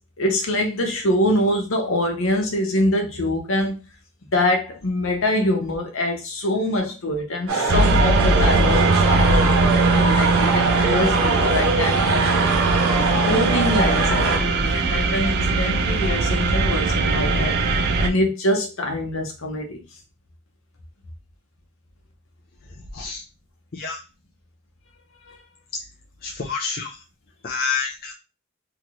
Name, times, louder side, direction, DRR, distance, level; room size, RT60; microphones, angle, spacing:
voice 1, 0.2-3.8 4.3-12.5 13.2-19.8 25.3-25.4, left 1 dB, 75° left, 0.8 m, -24 dB
sound 1, 7.5-14.4, right 3 dB, 80° right, 0.8 m, -22 dB
sound 2, 7.7-18.1, right 3 dB, 50° right, 0.4 m, -20 dB
voice 2, 26.2-27.0 27.4-28.1, left 5 dB, 45° left, 0.5 m, -28 dB
3.0 x 2.5 x 3.0 m
head